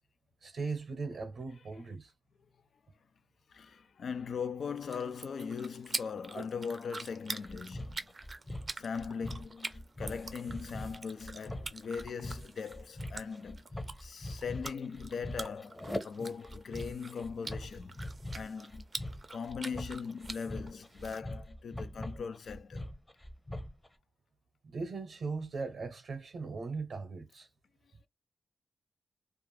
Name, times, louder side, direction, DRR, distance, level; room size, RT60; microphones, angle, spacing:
voice 1, 0.4-2.1 6.3-6.5 24.6-27.5, right 4 dB, 80° right, 0.7 m, -39 dB
voice 2, 3.5-8.0 8.7-13.7 14.0-18.0 18.3-18.8 19.3-22.9, left 6 dB, 80° left, 0.3 m, -40 dB
sound 1, 4.6-21.2, right 3 dB, 40° right, 0.5 m, -46 dB
sound 2, 7.4-23.9, left 1 dB, 20° left, 0.7 m, -42 dB
2.4 x 2.4 x 3.2 m
cardioid pair, 80°, 0 cm